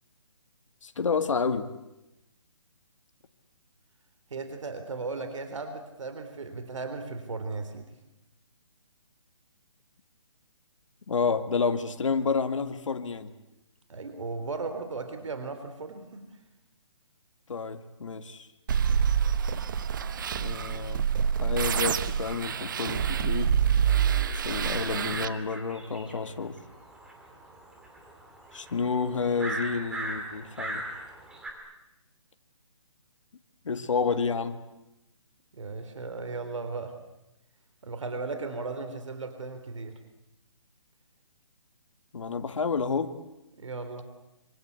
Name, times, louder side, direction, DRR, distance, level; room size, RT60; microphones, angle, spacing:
voice 1, 0.8-1.7 11.1-13.3 17.5-18.5 20.4-21.1 21.4-23.5 24.3-26.6 28.5-30.8 33.6-34.6 42.1-43.2, left 5 dB, 70° left, 8 dB, 2.2 m, -29 dB
voice 2, 4.3-7.9 13.9-16.2 35.5-37.0 37.8-39.9 43.6-44.0, right 3 dB, 70° right, 8 dB, 3.7 m, -36 dB
sound 1, 18.7-25.3, right 7 dB, 40° right, 1.1 m, -26 dB
sound 2, 24.2-31.5, right 1 dB, 5° right, 2.7 m, -39 dB
26.0 x 25.5 x 8.2 m, 0.93 s
hypercardioid pair, 165°, 17 cm